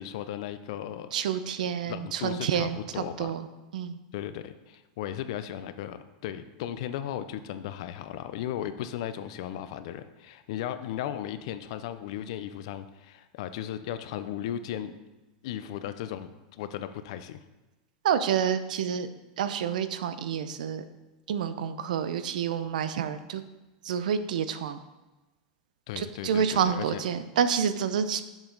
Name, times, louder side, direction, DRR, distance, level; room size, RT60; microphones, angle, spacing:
voice 1, 0.0-1.1 1.8-3.3 4.1-14.9 15.4-17.4 25.9-27.0, left 11 dB, 45° left, 11 dB, 0.5 m, -36 dB
voice 2, 1.1-3.5 3.7-4.0 18.0-19.1 19.4-20.8 21.3-23.4 23.8-24.8 26.0-28.2, right 8 dB, 85° right, 11 dB, 0.6 m, -28 dB
7.2 x 7.1 x 3.9 m, 1.1 s
supercardioid pair, 175°, 4 cm